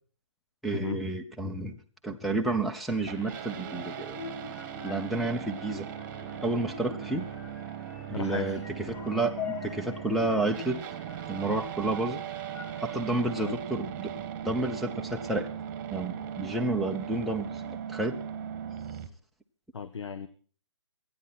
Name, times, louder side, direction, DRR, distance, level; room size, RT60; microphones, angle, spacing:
voice 1, 0.6-1.7 2.0-4.2 4.8-5.9 6.4-7.3 8.1-9.4 9.6-10.8 11.3-12.2 12.8-15.5 15.9-18.2, right 2 dB, ahead, 0 dB, 0.7 m, -30 dB
sound 1, 2.9-13.5, left 8 dB, 40° left, 1.7 m, -45 dB
sound 2, 3.1-19.1, right 9 dB, 25° right, 1.3 m, -39 dB
voice 2, 8.1-8.6 13.4-13.5 19.7-20.3, left 6 dB, 65° left, 11 dB, 1.1 m, -35 dB
27.0 x 9.5 x 4.2 m, 0.43 s
figure-of-eight pair, 150°, 16 cm